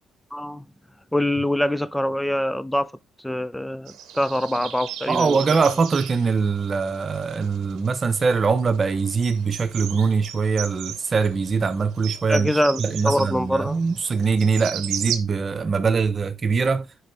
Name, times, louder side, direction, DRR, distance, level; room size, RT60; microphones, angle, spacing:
voice 1, 0.3-0.7 1.1-2.9 3.2-5.6 12.3-13.8, left 1 dB, 5° left, 0.5 m, -24 dB
sound 1, 3.9-15.2, right 10 dB, 85° right, 0.8 m, -36 dB
voice 2, 5.1-12.5 12.8-16.8, right 5 dB, 40° right, 0.8 m, -22 dB
6.5 x 4.8 x 3.4 m
cardioid pair, 90°, 0 cm